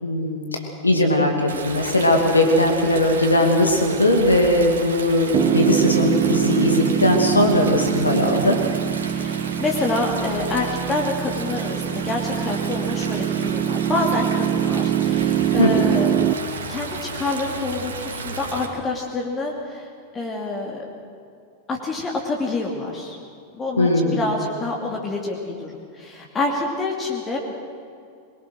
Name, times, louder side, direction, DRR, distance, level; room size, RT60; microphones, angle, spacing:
voice 1, 0.0-8.6 15.6-15.7 23.8-24.2, left 1 dB, 80° left, 2 dB, 2.6 m, -19 dB
Stream, 1.5-18.6, right 4 dB, 65° right, 2.7 m, -34 dB
Piano, 5.3-16.3, right 11 dB, 30° right, 1.1 m, -23 dB
voice 2, 9.1-16.3 16.7-19.9 20.1-20.8 21.7-23.2 23.5-27.5, left 3 dB, 20° left, -1 dB, 2.8 m, -27 dB
23.5 x 22.0 x 6.5 m, 2.3 s
figure-of-eight pair, 90°, 0 cm